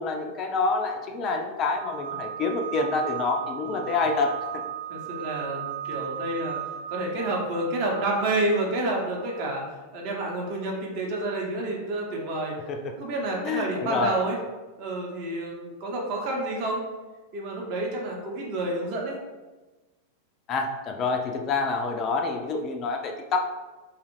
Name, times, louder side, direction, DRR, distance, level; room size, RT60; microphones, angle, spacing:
voice 1, 0.0-4.3 12.7-12.8 13.4-14.1 20.5-23.4, left 4 dB, 35° left, 3 dB, 0.3 m, -27 dB
sound 1, 1.7-9.5, right 11 dB, 75° right, 0.3 m, -37 dB
voice 2, 3.7-4.0 4.9-6.6 6.9-9.6 9.9-12.5 13.0-14.4 14.8-16.8 17.3-19.2, right 2 dB, 45° right, -1 dB, 0.7 m, -29 dB
2.6 x 2.4 x 3.0 m, 1.2 s
figure-of-eight pair, 90°, 0 cm